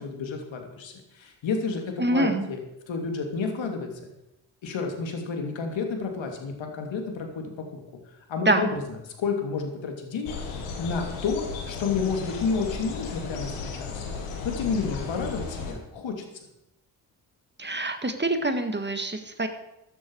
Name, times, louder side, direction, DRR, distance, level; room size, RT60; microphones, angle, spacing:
voice 1, 0.0-2.6 2.9-3.9 4.6-7.8 8.3-8.8 9.2-10.3 10.8-16.2, left 4 dB, 70° left, 4 dB, 2.8 m, -30 dB
voice 2, 2.0-2.5 8.5-8.7 17.6-19.5, right 1 dB, 20° right, 7 dB, 2.0 m, -25 dB
sound 1, 10.3-15.7, left 5 dB, 85° left, 2.1 m, -35 dB
14.5 x 10.0 x 4.8 m, 0.86 s
hypercardioid pair, 40°, 48 cm